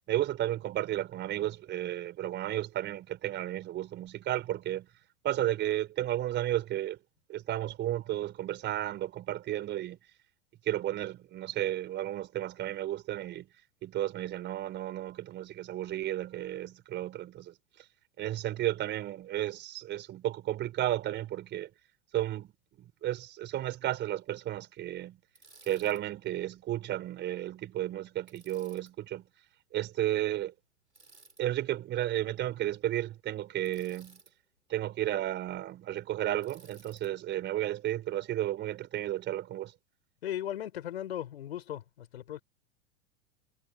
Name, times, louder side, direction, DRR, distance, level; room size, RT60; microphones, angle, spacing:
voice 1, 0.1-4.9 5.2-7.0 7.3-10.0 10.6-13.5 13.8-17.5 18.2-21.7 22.1-22.5 23.0-25.2 25.7-29.2 29.7-30.5 31.4-34.2 34.7-39.7, right 13 dB, 30° right, 4.2 m, -33 dB
Bicycle, 25.3-26.0 28.3-28.9 30.9-31.4 33.7-34.3 36.4-37.1, right 3 dB, 85° right, 7.6 m, -57 dB
voice 2, 40.2-42.4, left 11 dB, 65° left, 5.3 m, -37 dB
figure-of-eight pair, 90°, 34 cm